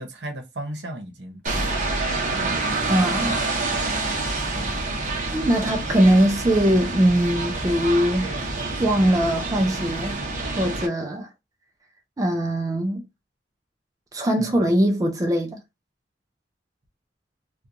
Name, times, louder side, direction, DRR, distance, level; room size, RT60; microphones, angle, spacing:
voice 1, 0.0-1.9 2.3-4.1 4.5-5.3 14.4-14.7, right 1 dB, 70° right, 0.9 m, -37 dB
sound 1, 1.5-10.9, right 3 dB, 45° right, 0.7 m, -27 dB
voice 2, 2.9-3.4 5.3-8.3 8.8-10.2 10.6-11.3 12.2-13.0 14.1-15.6, right 1 dB, 20° right, 0.3 m, -21 dB
2.9 x 2.2 x 2.5 m
head